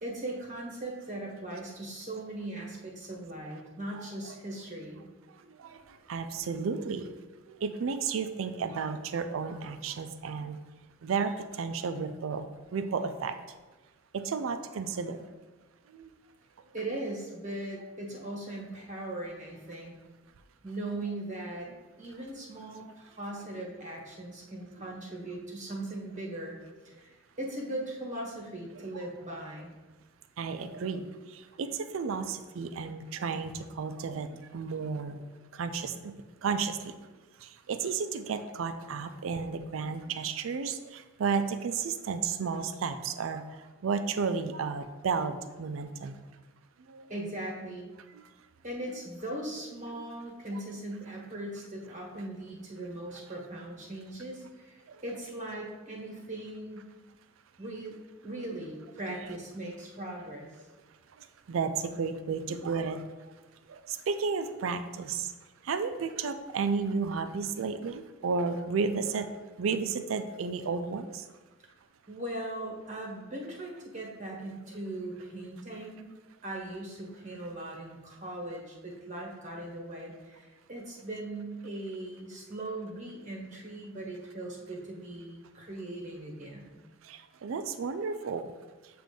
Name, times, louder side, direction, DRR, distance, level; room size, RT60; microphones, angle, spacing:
voice 1, 0.0-5.0 16.7-19.9 20.6-21.7 22.0-26.6 26.8-29.7 47.1-47.9 48.6-56.9 57.6-58.0 58.2-60.5 72.1-76.1 76.4-86.8, right 1 dB, 40° right, -1 dB, 1.3 m, -39 dB
voice 2, 4.0-4.4 5.3-7.1 7.5-10.6 11.0-13.6 14.1-15.3 15.9-16.1 30.4-35.2 35.5-36.1 36.4-36.9 37.4-46.2 46.9-47.1 48.1-48.3 49.9-50.0 50.5-50.6 54.9-55.0 61.2-63.3 63.7-65.3 65.6-69.3 69.6-71.3 87.0-88.5, right 5 dB, 80° right, 9 dB, 0.4 m, -33 dB
7.5 x 2.5 x 5.2 m, 1.3 s
head